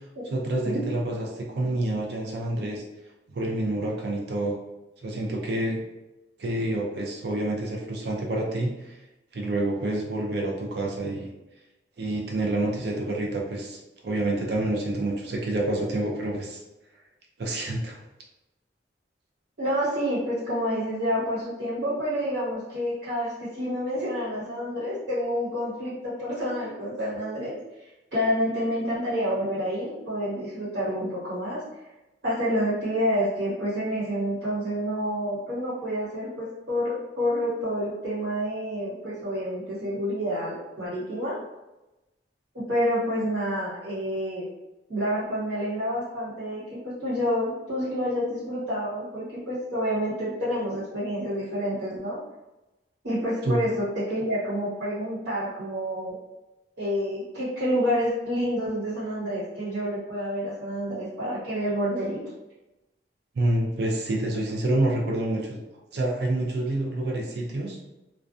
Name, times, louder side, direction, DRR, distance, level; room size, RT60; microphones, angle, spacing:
voice 1, 0.3-2.8 3.3-4.5 5.0-5.8 6.4-9.0 9.3-11.3 12.0-16.6 17.4-18.0 53.4-53.6 63.4-65.6 65.9-67.8, right 1 dB, 65° right, -1 dB, 0.4 m, -28 dB
voice 2, 19.6-27.6 28.1-31.6 32.2-41.4 42.5-44.5 44.9-52.2 53.0-56.2 56.8-62.2, equal, 85° right, -11 dB, 1.2 m, -28 dB
2.5 x 2.2 x 2.3 m, 0.99 s
head